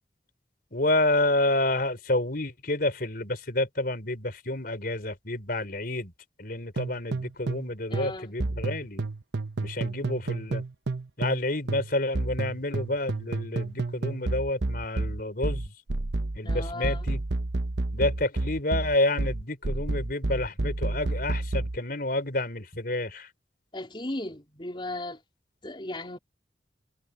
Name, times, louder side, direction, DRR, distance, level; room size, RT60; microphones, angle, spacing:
voice 1, 0.7-6.1 6.4-9.0 9.6-10.6 11.2-15.7 16.3-17.2 17.9-23.3, left 2 dB, 55° left, 4.7 m, -29 dB
sound 1, 6.8-7.7 7.9-11.4 11.7-21.8, right 2 dB, 80° right, 0.9 m, -30 dB
voice 2, 7.9-8.4 16.4-17.1 23.7-25.2 25.6-26.2, left 1 dB, 30° left, 3.8 m, -36 dB
head